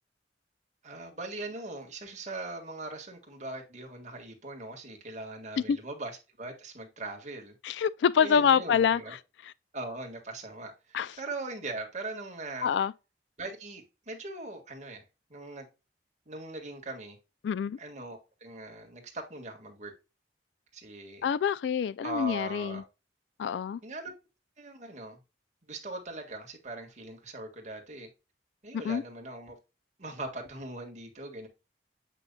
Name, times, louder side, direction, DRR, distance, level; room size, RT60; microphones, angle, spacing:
voice 1, 0.8-7.5 8.2-9.2 9.7-12.7 13.4-15.0 15.3-15.7 16.3-17.2 17.8-19.9 20.7-21.3 22.0-22.8 23.8-24.1 24.6-25.2 25.7-28.1 28.6-29.6 30.0-31.5, right 2 dB, 40° right, 1.7 m, -40 dB
voice 2, 7.6-9.0 9.4-9.5 10.9-11.1 12.6-12.9 17.4-17.8 21.2-22.8 23.4-23.8 28.7-29.0, left 7 dB, 75° left, 0.3 m, -26 dB
8.2 x 5.3 x 2.2 m
head